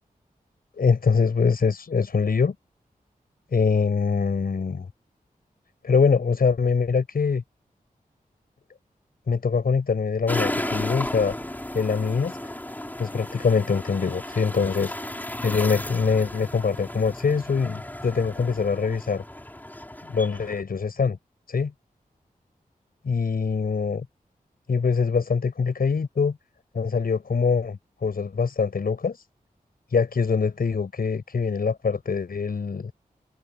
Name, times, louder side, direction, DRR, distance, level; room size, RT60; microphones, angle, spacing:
voice 1, 0.8-2.5 3.5-4.9 5.8-7.4 9.3-11.3 11.7-12.4 13.0-14.9 15.4-19.2 20.1-21.2 21.5-21.7 23.0-24.1 24.7-26.4 26.7-29.2 29.9-32.9, left 5 dB, 80° left, 7.5 m, -23 dB
sound 1, 10.3-20.6, left 1 dB, 10° left, 4.8 m, -34 dB
wide cardioid pair, 105°, 15 cm